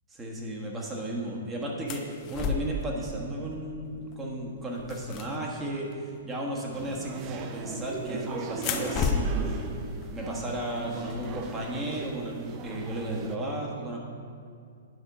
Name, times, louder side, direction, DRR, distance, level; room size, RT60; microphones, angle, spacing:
voice 1, 0.1-9.7 10.1-14.0, right 1 dB, 15° right, -2 dB, 1.4 m, -34 dB
sound 1, 1.9-2.9 4.0-4.2 4.5-5.9 7.4-7.9 8.5-11.6, left 4 dB, 35° left, 0.6 m, -33 dB
sound 2, 6.7-13.4, right 6 dB, 30° right, 0.5 m, -39 dB
9.5 x 5.1 x 4.8 m, 2.4 s
figure-of-eight pair, 115°, 0 cm